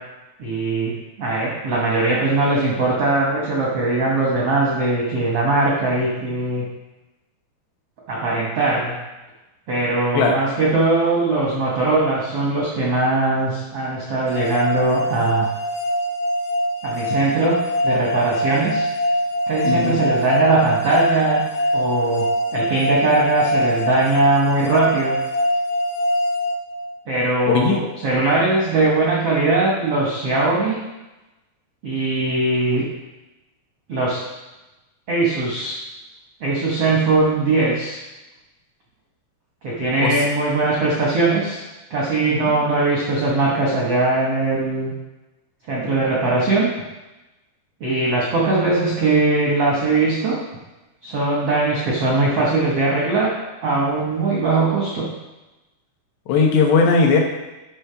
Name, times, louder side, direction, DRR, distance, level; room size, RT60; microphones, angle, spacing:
voice 1, 0.4-0.9 1.2-6.6 8.1-9.0 9.7-15.5 16.8-18.9 19.5-21.4 21.7-22.2 22.5-25.2 27.1-30.8 31.8-32.8 33.9-34.3 35.1-35.8 36.4-38.0 39.6-41.6 41.9-44.9 45.7-46.7 47.8-50.4 51.0-53.3 53.6-55.1, right 2 dB, 80° right, -5 dB, 1.3 m, -20 dB
sound 1, 14.3-27.2, equal, 60° left, 0.7 m, -23 dB
voice 2, 19.6-20.0 27.5-27.8 40.0-40.2 42.3-42.6 56.3-57.2, left 4 dB, 85° left, 1 dB, 3.2 m, -18 dB
9.9 x 3.4 x 5.6 m, 1.0 s
omnidirectional pair, 4.8 m